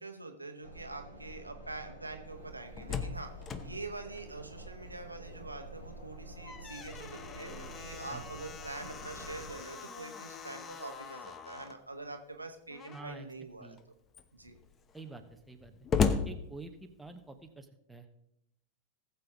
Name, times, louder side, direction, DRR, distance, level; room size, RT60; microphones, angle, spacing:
voice 1, 0.0-3.3 3.6-13.7 14.3-14.6, right 2 dB, 80° right, 5 dB, 1.2 m, -45 dB
sound 1, 0.6-9.5, right 2 dB, 85° left, 2.9 m, -49 dB
Slam, 2.5-5.3 5.6-5.7 6.2-11.8 12.7-13.2 13.8-13.9 14.1-17.2, left 5 dB, 25° left, 0.9 m, -38 dB
voice 2, 12.9-13.3 13.6-13.8 14.9-15.7 16.2-18.1, right 3 dB, 5° right, 4 dB, 1.1 m, -48 dB
19.0 x 7.0 x 3.6 m, 0.77 s
figure-of-eight pair, 90°, 0 cm